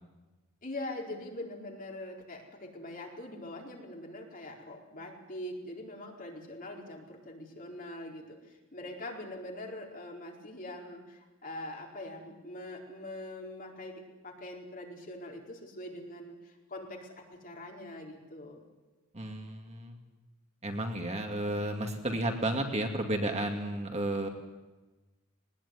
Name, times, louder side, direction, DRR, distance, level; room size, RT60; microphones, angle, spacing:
voice 1, 0.6-18.6, left 1 dB, 40° left, 0 dB, 4.5 m, -43 dB
voice 2, 19.1-20.0 20.6-24.3, right 1 dB, 30° right, 4 dB, 2.3 m, -32 dB
20.5 x 19.5 x 9.8 m, 1.1 s
head